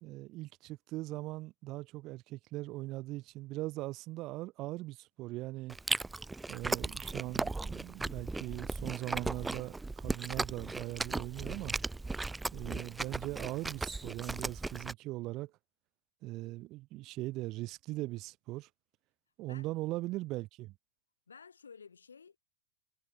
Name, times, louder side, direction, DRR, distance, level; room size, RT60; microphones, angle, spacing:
voice 1, 0.0-5.8 6.5-11.8 12.5-15.5 16.2-18.7 19.4-20.7, right 19 dB, 40° right, 1.1 m, -40 dB
Chewing mastication, 5.7-14.9, right 3 dB, 10° right, 0.9 m, -37 dB
voice 2, 21.3-22.4, left 6 dB, 75° left, 4.2 m, -53 dB
figure-of-eight pair, 90°, 0 cm